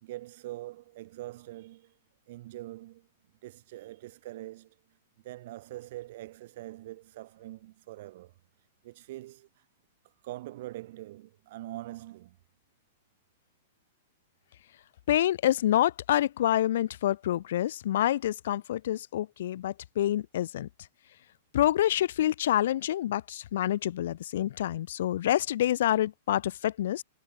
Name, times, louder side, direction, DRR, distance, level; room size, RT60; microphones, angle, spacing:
voice 1, 0.0-2.0 2.3-3.1 3.4-4.8 5.2-8.3 8.8-9.6 10.2-12.4, right 16 dB, 55° right, 2.4 m, -43 dB
voice 2, 15.1-20.7 21.5-27.0, left 12 dB, 65° left, 0.5 m, -27 dB
hypercardioid pair, 155°, 0 cm